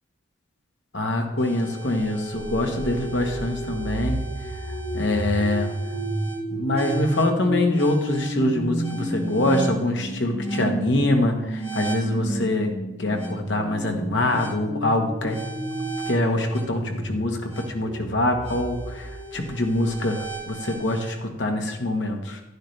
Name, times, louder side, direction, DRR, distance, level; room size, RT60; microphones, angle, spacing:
voice 1, 0.9-5.7 6.5-12.7 13.0-15.4 16.1-22.4, left 1 dB, 70° left, 3 dB, 1.5 m, -24 dB
sound 1, 1.4-21.1, right 1 dB, 30° left, 4.2 m, -32 dB
11.5 x 10.5 x 3.3 m, 0.97 s
head